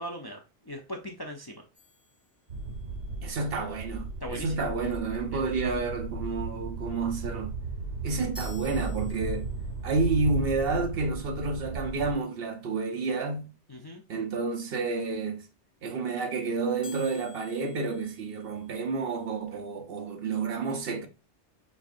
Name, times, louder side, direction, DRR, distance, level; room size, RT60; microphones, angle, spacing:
voice 1, 0.0-1.6 4.2-4.7 5.3-5.4 8.1-8.3 13.7-14.0, equal, 30° left, 0.5 m, -39 dB
sound 1, 1.7-3.0 8.3-9.8 16.8-19.0, left 2 dB, ahead, 1.7 m, -51 dB
sound 2, 2.5-12.1, right 3 dB, 85° right, 1.3 m, -36 dB
voice 2, 3.2-7.5 8.0-9.5 9.8-13.5 14.1-15.4 15.8-21.1, right 3 dB, 60° right, 0.9 m, -30 dB
5.3 x 3.6 x 2.5 m
omnidirectional pair, 1.2 m